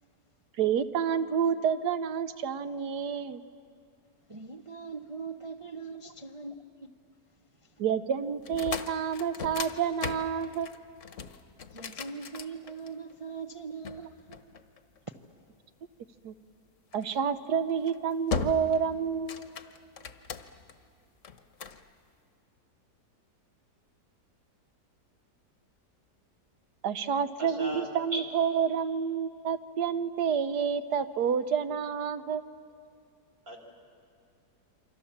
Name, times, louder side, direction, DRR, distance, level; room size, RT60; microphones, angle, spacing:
voice 1, 0.6-3.4 7.8-10.7 16.2-16.3 16.9-19.4 26.8-32.4, right 7 dB, 75° right, 1.4 m, -29 dB
voice 2, 4.3-6.9 11.7-14.4, right 5 dB, 40° right, 0.4 m, -41 dB
sound 1, 8.4-13.1 13.8-15.2 16.9-17.2 17.7-18.0 18.3-18.9 19.1-20.7 21.2-21.8, left 5 dB, 55° left, 1.2 m, -37 dB
voice 3, 27.4-27.9 28.1-28.2 33.5-33.6, right 1 dB, 60° right, 4.2 m, -36 dB
28.0 x 24.5 x 7.2 m
omnidirectional pair, 1.8 m